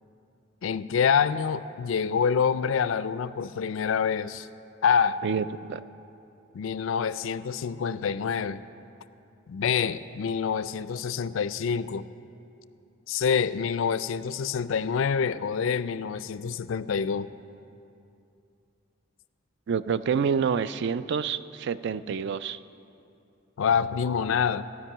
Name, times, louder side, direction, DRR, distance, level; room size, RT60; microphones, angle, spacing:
voice 1, 0.6-4.5 4.8-5.2 6.5-8.6 9.5-12.1 13.1-17.3 23.6-24.7, left 6 dB, 70° left, 15 dB, 0.4 m, -26 dB
voice 2, 5.2-5.8 19.7-22.6, right 6 dB, 60° right, 15 dB, 0.3 m, -28 dB
15.5 x 5.3 x 8.9 m, 2.7 s
head